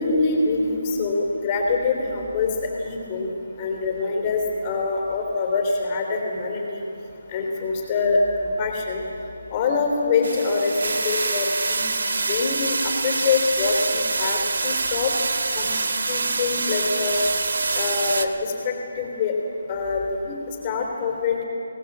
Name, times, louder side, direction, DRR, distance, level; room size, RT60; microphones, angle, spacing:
voice 1, 0.0-3.3 3.6-6.8 7.3-9.0 9.5-11.9 12.3-15.1 15.5-15.7 16.1-17.2 17.7-19.4 19.7-21.4, left 4 dB, 25° left, 1 dB, 3.3 m, -25 dB
sound 1, 10.2-18.3, right 3 dB, 70° right, 1.8 m, -25 dB
23.0 x 19.0 x 7.4 m, 3.0 s
hypercardioid pair, 165°, 0 cm